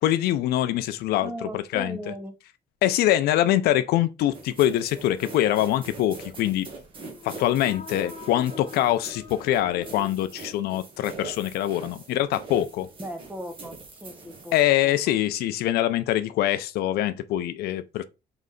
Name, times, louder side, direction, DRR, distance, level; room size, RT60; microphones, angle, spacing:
voice 1, 0.0-2.0 2.8-6.7 7.2-12.9 14.5-18.0, left 13 dB, 70° left, 0.5 m, -24 dB
voice 2, 1.2-2.4 13.0-15.2, right 1 dB, 10° right, 0.7 m, -38 dB
sound 1, 4.3-14.6, right 3 dB, 30° right, 1.1 m, -43 dB
sound 2, 7.0-10.9, left 6 dB, 40° left, 1.2 m, -45 dB
4.0 x 3.2 x 3.8 m
cardioid pair, 165°, 17 cm